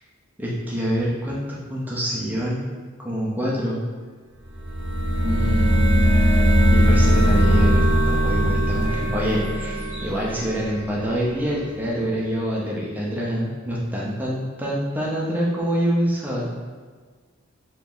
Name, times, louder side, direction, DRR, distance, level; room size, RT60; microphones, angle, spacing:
voice 1, 0.4-2.7 3.0-3.8 5.2-5.7 6.7-16.5, equal, 10° right, -5 dB, 0.6 m, -26 dB
sound 1, 4.5-11.2, equal, 25° right, 0.9 m, -19 dB
2.9 x 2.7 x 3.8 m, 1.5 s
head